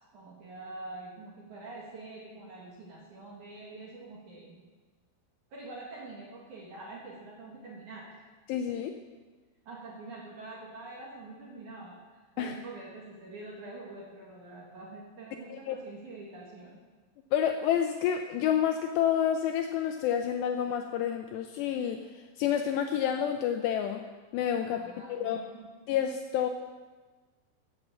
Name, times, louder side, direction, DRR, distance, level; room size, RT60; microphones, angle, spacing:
voice 1, 0.1-4.6 5.5-8.3 9.7-16.8 24.7-25.7, right 2 dB, 55° right, -2 dB, 2.4 m, -45 dB
voice 2, 8.5-8.9 12.4-12.5 15.5-15.8 17.3-24.0 24.3-25.4 25.9-26.5, left 9 dB, 80° left, 5 dB, 2.5 m, -29 dB
15.0 x 7.7 x 7.3 m, 1.3 s
omnidirectional pair, 5.5 m